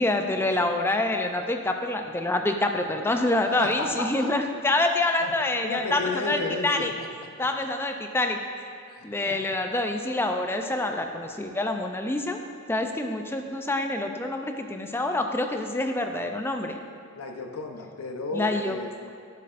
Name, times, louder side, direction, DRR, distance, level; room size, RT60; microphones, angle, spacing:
voice 1, 0.0-6.9 7.4-8.7 9.0-12.4 12.7-16.8 18.3-18.8, left 2 dB, 10° left, 5 dB, 0.4 m, -26 dB
voice 2, 3.6-4.3 5.2-5.3 5.6-7.1 7.4-7.5 8.9-9.6 17.1-18.9, left 3 dB, 80° left, 3 dB, 0.8 m, -33 dB
11.0 x 7.5 x 2.5 m, 2.2 s
head